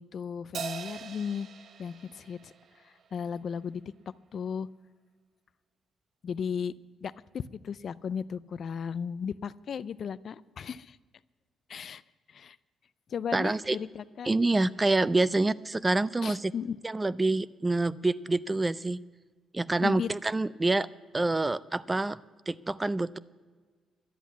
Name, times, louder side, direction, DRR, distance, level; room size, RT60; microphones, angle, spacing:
voice 1, 0.0-1.5 1.8-2.5 2.8-3.8 4.3-4.7 6.2-6.7 7.0-11.0 11.7-12.0 12.3-12.6 13.1-14.3 16.2-16.8 19.8-20.1, left 7 dB, 55° left, 17 dB, 0.4 m, -35 dB
Crash cymbal, 0.5-3.2, right 6 dB, 60° right, 0.7 m, -41 dB
voice 2, 13.3-13.8 14.3-16.5 16.8-19.0 19.5-20.9 21.1-22.2 22.5-23.2, right 2 dB, 20° right, 18 dB, 0.4 m, -27 dB
12.0 x 8.2 x 9.3 m, 1.5 s
cardioid pair, 90°, 0 cm